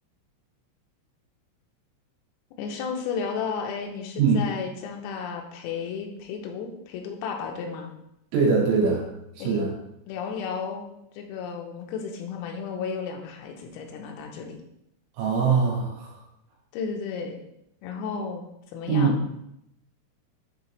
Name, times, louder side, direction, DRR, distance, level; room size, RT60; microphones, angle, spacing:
voice 1, 2.6-7.9 9.4-9.6 10.1-10.8 11.2-14.6 16.7-17.4 17.8-18.5 18.7-19.2, left 6 dB, 90° left, 3 dB, 3.5 m, -33 dB
voice 2, 8.3-9.1 9.4-9.7 15.1-16.2 18.9-19.2, right 5 dB, 80° right, -4 dB, 4.6 m, -22 dB
10.5 x 3.9 x 3.2 m, 0.82 s
omnidirectional pair, 5.9 m